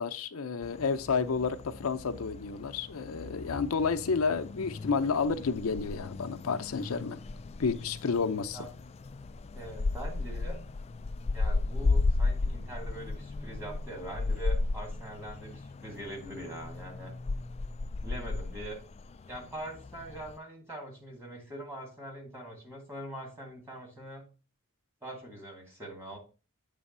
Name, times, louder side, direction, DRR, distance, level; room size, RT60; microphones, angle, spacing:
voice 1, 0.0-7.2 7.6-8.6, left 5 dB, 90° left, 0.6 m, -30 dB
sound 1, 0.6-20.4, left 3 dB, 30° left, 0.3 m, -35 dB
voice 2, 9.5-10.6 11.3-17.1 18.0-18.8 19.3-24.3 25.0-26.2, right 1 dB, 10° right, 2.3 m, -43 dB
8.0 x 3.4 x 5.4 m
head